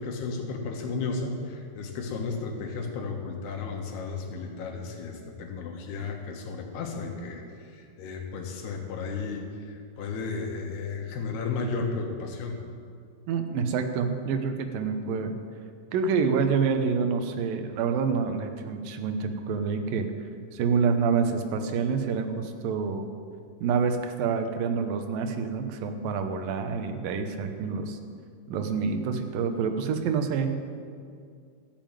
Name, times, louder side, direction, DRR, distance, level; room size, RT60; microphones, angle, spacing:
voice 1, 0.0-7.4 7.7-12.6, left 4 dB, 80° left, 1 dB, 3.5 m, -33 dB
voice 2, 13.3-15.3 15.9-20.1 20.5-23.1 23.6-28.0 28.5-30.5, right 5 dB, 70° right, 6 dB, 2.4 m, -27 dB
14.0 x 7.4 x 9.0 m, 2.3 s
omnidirectional pair, 4.6 m